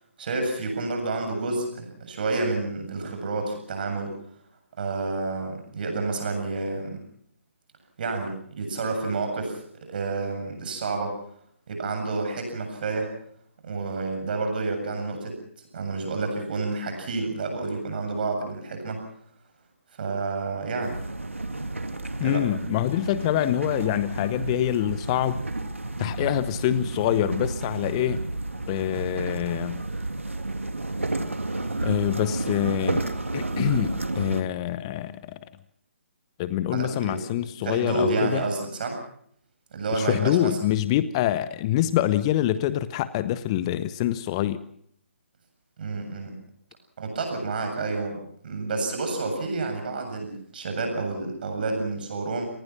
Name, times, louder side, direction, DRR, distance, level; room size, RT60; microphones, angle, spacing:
voice 1, 0.2-4.2 4.8-7.0 8.0-11.2 11.7-13.1 13.6-15.4 15.7-19.0 20.0-21.0 22.2-22.5 36.7-37.2 37.6-39.0 39.7-40.6 45.8-46.3 47.0-52.5, right 3 dB, 45° right, 5 dB, 7.7 m, -29 dB
sound 1, 20.8-34.4, right 2 dB, 75° right, 2.1 m, -31 dB
voice 2, 22.2-25.4 26.0-28.2 28.7-29.8 31.8-33.1 33.3-35.4 36.4-38.4 39.9-44.6, left 13 dB, 25° left, 15 dB, 0.8 m, -25 dB
27.0 x 19.5 x 5.9 m, 0.66 s
figure-of-eight pair, 135°, 7 cm